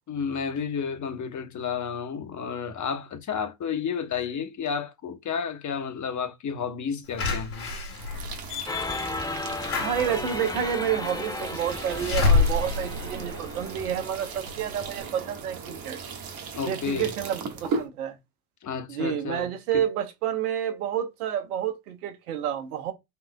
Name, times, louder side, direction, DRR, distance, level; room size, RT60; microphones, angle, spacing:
voice 1, 0.1-7.7 16.6-17.1 18.6-19.8, left 6 dB, 40° left, 1.1 m, -31 dB
Slam / Alarm, 7.2-14.0 14.5-14.6 14.8-14.9, left 4 dB, 75° left, 2.5 m, -28 dB
sound 1, 7.9-17.9, right 5 dB, 55° right, 1.6 m, -37 dB
sound 2, 8.7-14.4, left 2 dB, 10° left, 0.7 m, -35 dB
voice 2, 9.8-16.0 16.6-18.2 18.9-22.9, right 9 dB, 85° right, 1.0 m, -29 dB
5.7 x 3.6 x 2.2 m
hypercardioid pair, 65°, 44 cm